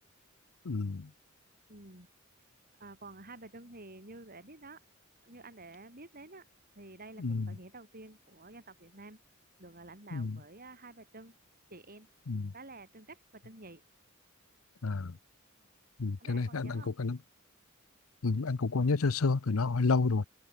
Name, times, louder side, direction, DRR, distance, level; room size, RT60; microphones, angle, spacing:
voice 1, 0.6-1.1 7.2-7.5 10.1-10.4 12.3-12.5 14.8-15.1 16.0-17.2 18.2-20.3, left 4 dB, 80° left, 0.7 m, -30 dB
voice 2, 1.7-2.1 2.8-4.8 5.2-6.5 6.7-9.2 9.6-11.3 11.7-12.1 12.5-13.8 16.2-16.9, right 2 dB, 45° right, 6.4 m, -50 dB
head